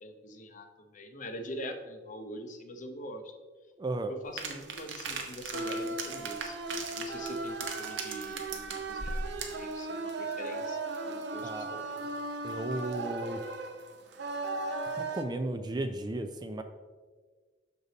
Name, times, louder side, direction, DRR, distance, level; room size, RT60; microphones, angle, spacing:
voice 1, 0.0-3.3 4.1-6.6 6.9-10.8 11.1-12.1, equal, 45° left, 7 dB, 0.7 m, -43 dB
voice 2, 3.8-4.1 11.4-11.7 12.4-13.4 14.9-16.6, right 2 dB, 25° right, 8 dB, 0.4 m, -34 dB
sound 1, 4.4-9.6, right 4 dB, 90° right, 0.9 m, -39 dB
sound 2, 5.5-15.2, right 2 dB, 65° right, 0.7 m, -37 dB
6.6 x 5.3 x 4.0 m, 1.4 s
head